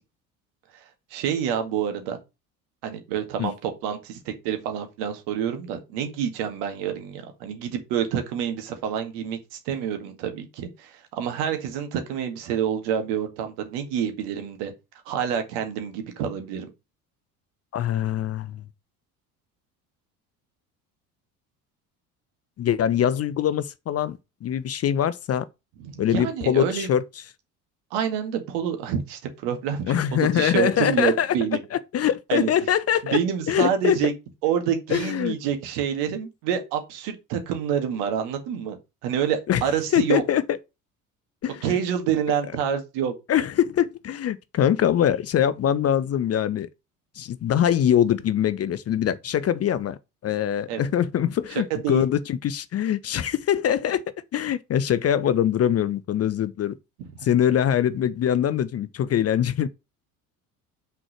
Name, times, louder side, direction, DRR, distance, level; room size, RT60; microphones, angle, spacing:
voice 1, 1.1-2.2 2.8-14.7 15.1-16.7 25.8-26.9 27.9-29.9 30.3-31.6 32.3-32.5 33.1-34.1 34.4-38.8 39.0-40.2 41.6-43.1 50.7-50.9 51.8-52.0 57.2-57.3, right 8 dB, 60° right, 2.0 m, -27 dB
voice 2, 17.7-18.6 22.6-25.5 26.0-27.0 29.9-31.3 31.7-33.2 33.5-34.0 34.9-35.4 39.5-39.6 39.9-40.4 41.4-41.8 43.3-46.7 47.2-54.0 54.3-56.8 57.2-59.7, left 10 dB, 35° left, 0.7 m, -23 dB
6.2 x 4.6 x 6.4 m
figure-of-eight pair, 60°, 45 cm